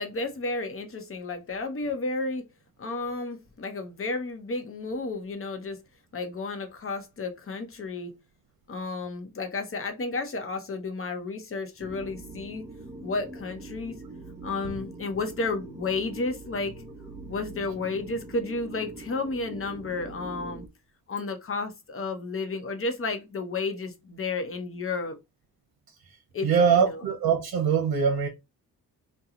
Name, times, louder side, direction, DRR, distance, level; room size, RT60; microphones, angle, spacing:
voice 1, 0.0-2.4 2.8-5.8 6.1-8.1 8.7-12.7 13.0-14.0 14.4-16.8 17.3-20.6 21.1-25.2 26.3-27.0, left 3 dB, 35° left, 0.8 m, -32 dB
sound 1, 11.8-20.7, right 2 dB, 5° right, 0.7 m, -43 dB
voice 2, 26.4-28.3, right 6 dB, 80° right, 0.7 m, -22 dB
2.9 x 2.2 x 3.7 m
wide cardioid pair, 115°, 36 cm